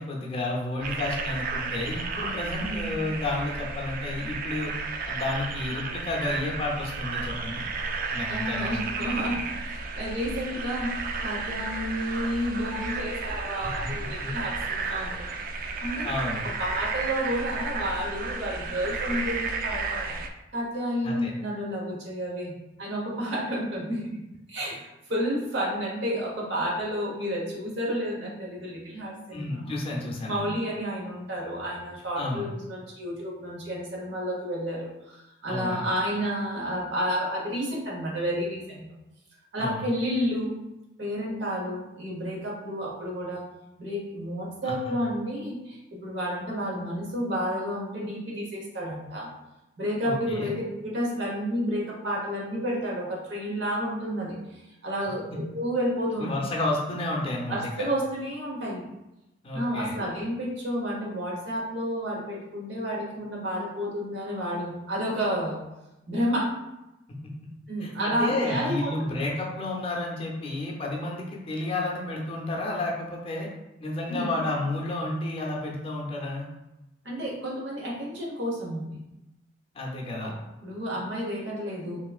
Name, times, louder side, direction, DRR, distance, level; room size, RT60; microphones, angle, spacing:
voice 1, 0.0-4.7 5.1-7.7 8.1-8.8 9.2-9.3 13.8-14.3 14.8-15.0 16.0-16.4 21.0-21.3 29.3-30.5 32.2-32.5 35.5-35.9 39.6-39.8 44.6-44.9 50.0-50.5 56.2-57.9 59.4-60.0 67.1-67.3 67.8-73.5 73.8-76.5 79.7-80.4, left 2 dB, 30° left, -2 dB, 0.6 m, -31 dB
sound 1, 0.8-20.3, right 4 dB, 50° right, 0.3 m, -33 dB
voice 2, 8.3-10.9 11.2-15.3 15.6-16.1 16.6-20.1 20.5-22.5 22.8-24.0 24.5-29.7 30.3-38.8 39.5-40.5 41.0-43.4 43.8-49.3 49.8-50.6 50.8-56.4 57.5-58.9 59.5-65.6 66.1-66.5 67.7-69.1 74.1-74.4 77.0-79.0 80.2-80.3 80.6-82.0, equal, 70° right, -3 dB, 1.0 m, -31 dB
3.3 x 3.1 x 2.4 m, 0.96 s
head